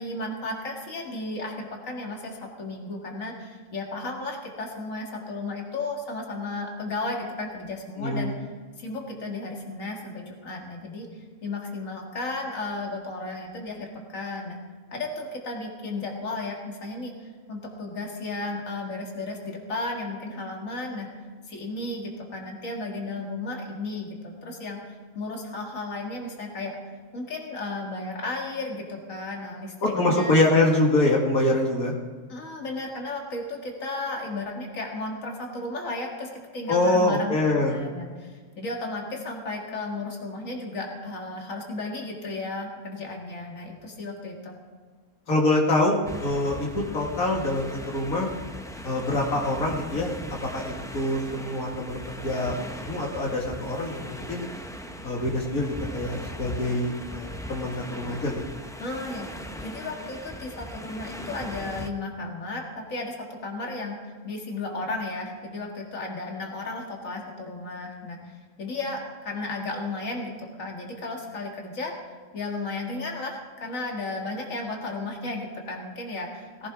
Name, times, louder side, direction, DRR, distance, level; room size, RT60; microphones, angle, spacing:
voice 1, 0.0-8.3 8.8-14.6 14.9-21.1 21.5-26.8 27.1-30.3 32.3-44.5 58.8-59.3 59.6-63.2 63.4-64.0 64.2-71.9 72.3-76.7, left 2 dB, 65° left, 0 dB, 2.4 m, -34 dB
voice 2, 8.0-8.3 29.8-31.9 36.7-37.8 45.3-48.3 48.8-54.5 55.0-58.4, left 2 dB, 90° left, -1 dB, 2.5 m, -25 dB
sound 1, 46.1-61.9, equal, 5° left, 0.5 m, -39 dB
18.5 x 16.5 x 3.7 m, 1.6 s
omnidirectional pair, 1.5 m